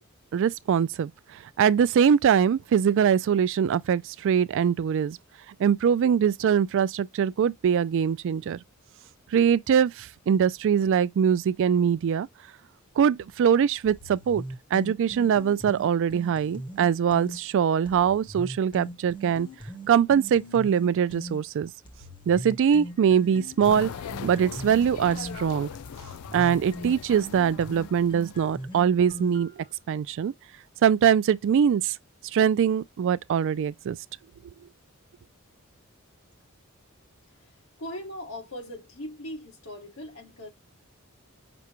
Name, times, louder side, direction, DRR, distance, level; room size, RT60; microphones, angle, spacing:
voice 1, 0.3-1.1 1.6-5.2 5.6-8.6 9.3-12.3 13.0-14.4 14.7-19.5 19.9-21.7 22.3-23.9 24.2-25.7 26.3-29.5 29.9-30.3 30.8-31.9 32.3-34.0, right 8 dB, 60° right, 0.3 m, -22 dB
sound 1, 13.9-17.4 17.9-21.4 21.9-29.7, right 1 dB, 20° left, 1.1 m, -40 dB
sound 2, 23.6-28.7, left 7 dB, 90° left, 0.4 m, -40 dB
voice 2, 37.3-40.5, left 1 dB, 70° left, 2.0 m, -40 dB
6.0 x 2.2 x 2.9 m
head